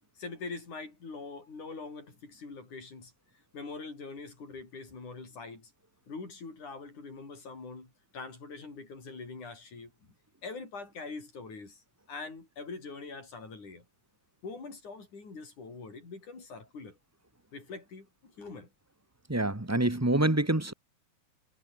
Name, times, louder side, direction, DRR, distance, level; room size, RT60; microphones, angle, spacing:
voice 1, 0.2-3.1 3.5-5.7 6.1-9.9 10.4-11.8 12.1-13.8 14.4-17.0 17.5-18.7, left 4 dB, 65° left, 8.4 m, -43 dB
voice 2, 19.3-20.7, right 1 dB, 15° right, 0.5 m, -26 dB
omnidirectional pair, 3.8 m